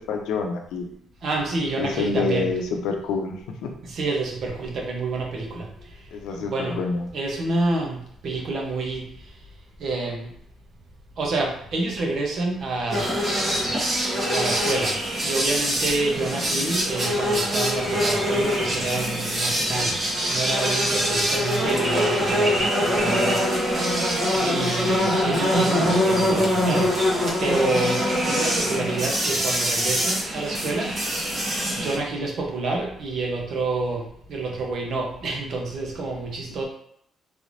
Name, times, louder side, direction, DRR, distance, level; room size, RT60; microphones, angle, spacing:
voice 1, 0.1-0.9 1.8-3.7 6.1-7.1 16.3-16.6 24.7-24.9, left 4 dB, 85° left, 3 dB, 0.6 m, -27 dB
voice 2, 1.2-2.5 3.8-5.7 6.3-6.8 7.1-9.1 9.8-10.3 11.2-13.1 14.3-14.9 15.2-19.9 20.3-23.4 24.3-26.9 27.4-30.9 31.8-36.6, right 2 dB, 60° right, 0 dB, 0.9 m, -28 dB
sound 1, 12.9-32.0, equal, 40° right, 1.4 m, -23 dB
3.3 x 3.2 x 2.6 m, 0.71 s
cardioid pair, 90°, 0 cm